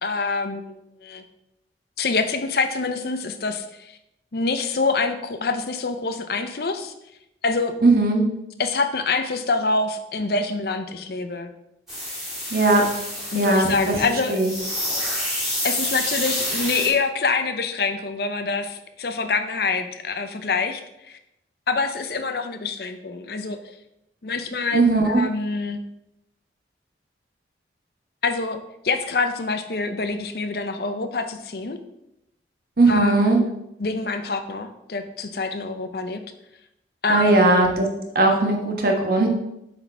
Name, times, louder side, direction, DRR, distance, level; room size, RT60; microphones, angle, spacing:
voice 1, 0.0-1.2 2.0-3.9 4.3-6.9 7.4-7.8 8.6-11.5 13.3-14.4 15.6-20.8 21.1-21.2 21.7-23.6 24.2-25.8 28.2-31.8 32.9-33.5 33.8-36.2 37.0-37.6, left 4 dB, 55° left, 8 dB, 0.6 m, -26 dB
voice 2, 7.8-8.2 12.5-12.8 13.3-14.0 14.3-14.5 24.7-25.2 32.8-33.4 37.1-37.9 38.1-39.3, right 2 dB, 55° right, 2 dB, 1.3 m, -18 dB
sound 1, 11.9-16.9, left 1 dB, ahead, 2.5 m, -28 dB
7.9 x 4.1 x 4.5 m, 0.84 s
head